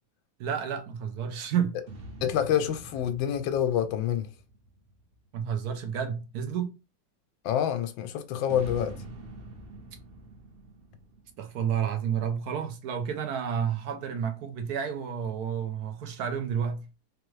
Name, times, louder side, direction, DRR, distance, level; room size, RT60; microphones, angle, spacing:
voice 1, 0.4-1.8 5.3-6.7 11.4-16.9, right 8 dB, 65° right, 1.1 m, -30 dB
sound 1, 1.8-5.5 8.4-12.2, right 2 dB, 40° right, 0.9 m, -46 dB
voice 2, 2.2-4.3 7.4-9.0, left 9 dB, 85° left, 1.3 m, -27 dB
3.5 x 3.3 x 3.1 m
omnidirectional pair, 2.0 m